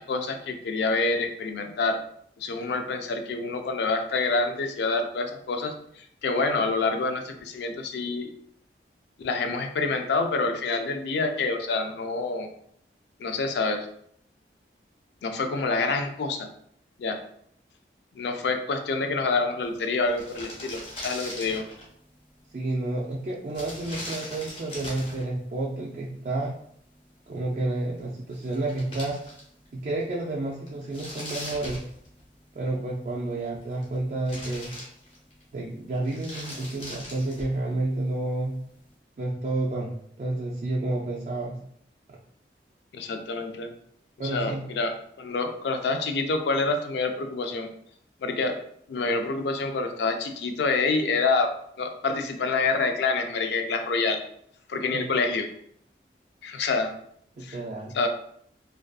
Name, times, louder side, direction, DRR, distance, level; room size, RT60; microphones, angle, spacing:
voice 1, 0.0-2.0 2.4-5.7 6.2-8.3 9.2-12.5 13.2-13.9 15.2-16.5 17.0-17.2 18.1-21.6 42.9-43.7 44.2-44.9 45.2-47.7 48.2-48.6 48.9-51.5 51.8-54.2 54.7-55.5 56.4-56.9 57.4-57.6 57.9-58.1, left 3 dB, 75° left, 5 dB, 0.3 m, -27 dB
sound 1, 19.8-19.9 20.0-21.9 23.5-25.3 28.0-28.1 28.3-29.7 30.0-30.1 30.7-32.4 33.4-34.0 34.3-35.4 35.9-37.6, left 1 dB, 30° left, 0.8 m, -40 dB
voice 2, 22.5-26.5 27.3-29.2 29.7-31.8 32.6-34.7 35.5-38.5 39.2-39.9 40.2-41.6 44.2-44.6 54.9-55.0 57.4-58.0, right 2 dB, 45° right, -3 dB, 0.3 m, -30 dB
2.5 x 2.2 x 2.3 m, 0.67 s
head